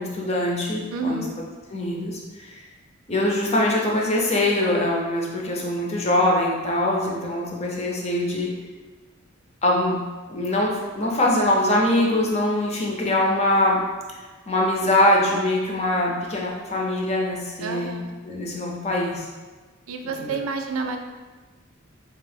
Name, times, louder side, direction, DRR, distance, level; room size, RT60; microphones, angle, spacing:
voice 1, 0.0-1.2 1.7-2.6 3.1-8.5 9.6-10.0 10.3-13.8 14.5-18.0 18.2-19.3 20.2-20.3, left 1 dB, 30° left, -2 dB, 0.6 m, -23 dB
voice 2, 0.9-1.3 17.6-18.1 19.9-21.0, right 3 dB, 80° right, 4 dB, 0.4 m, -29 dB
3.5 x 3.0 x 3.4 m, 1.3 s
head